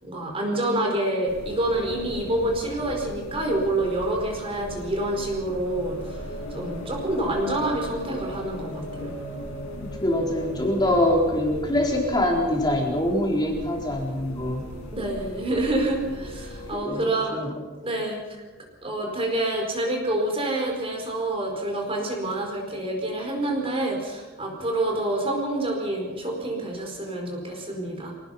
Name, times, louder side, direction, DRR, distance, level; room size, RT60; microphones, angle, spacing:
voice 1, 0.0-6.2 6.5-9.1 14.9-17.4 17.8-18.2 18.8-28.1, right 1 dB, 25° right, 0 dB, 4.6 m, -27 dB
sound 1, 1.3-16.8, equal, 90° left, 6.5 m, -38 dB
voice 2, 9.8-14.6 16.7-17.1 17.3-17.5, left 1 dB, 20° left, 0 dB, 4.2 m, -24 dB
26.5 x 18.5 x 5.7 m, 1.2 s
head